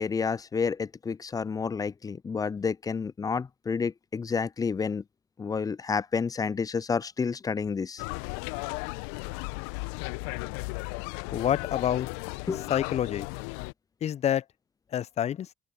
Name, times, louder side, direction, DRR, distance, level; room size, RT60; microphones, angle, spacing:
voice 1, 0.0-5.0 5.4-8.0 12.5-12.7, left 5 dB, 25° left, 0.6 m, -30 dB
sound 1, 8.0-13.7, left 32 dB, 70° left, 1.5 m, -35 dB
voice 2, 11.3-12.1 12.7-13.3 14.0-14.4 14.9-15.5, left 10 dB, 50° left, 1.2 m, -27 dB
figure-of-eight pair, 45°, 14 cm